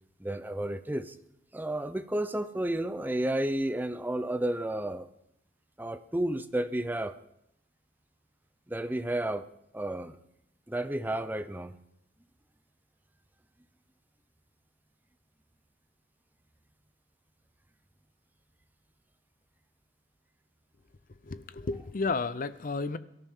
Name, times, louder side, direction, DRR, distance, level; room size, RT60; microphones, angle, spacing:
voice 1, 0.2-1.2 1.5-5.1 5.8-7.1 8.7-9.5 9.7-10.2 10.7-11.8, right 1 dB, 10° right, 11 dB, 0.5 m, -31 dB
voice 2, 21.2-23.0, left 3 dB, 45° left, 14 dB, 0.6 m, -32 dB
23.5 x 13.5 x 3.6 m, 0.80 s
head